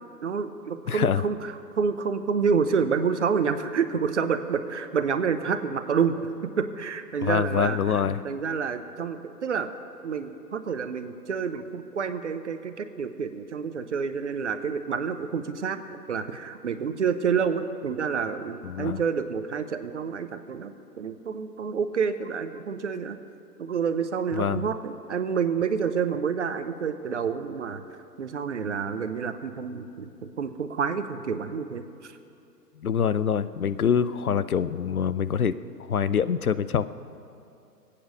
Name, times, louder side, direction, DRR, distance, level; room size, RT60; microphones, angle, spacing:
voice 1, 0.2-8.0 8.2-9.7 10.0-15.8 16.1-23.2 23.6-27.8 28.2-32.1, right 6 dB, 45° right, 10 dB, 0.9 m, -28 dB
voice 2, 0.9-1.2 7.2-8.2 18.6-19.0 24.3-24.6 32.8-35.6 35.9-36.9, left 7 dB, 65° left, 15 dB, 0.6 m, -25 dB
22.5 x 8.7 x 6.8 m, 2.7 s
figure-of-eight pair, 130°, 48 cm